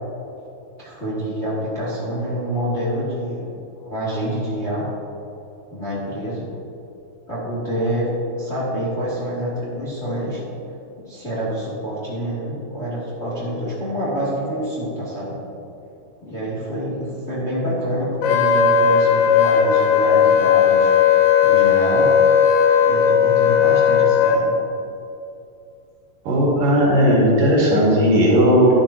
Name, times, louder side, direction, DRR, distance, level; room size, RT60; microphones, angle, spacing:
voice 1, 0.8-3.5 3.8-4.9 5.7-6.5 7.3-8.1 8.4-10.4 11.0-15.4 16.2-20.9 21.4-22.2 22.8-24.6, equal, 20° left, -8 dB, 2.3 m, -27 dB
Wind instrument woodwind instrument, 18.2-24.4, left 7 dB, 80° left, 2.3 m, -16 dB
voice 2, 26.3-28.7, equal, 65° right, -5 dB, 3.8 m, -16 dB
12.0 x 12.0 x 2.9 m, 2.8 s
omnidirectional pair, 4.2 m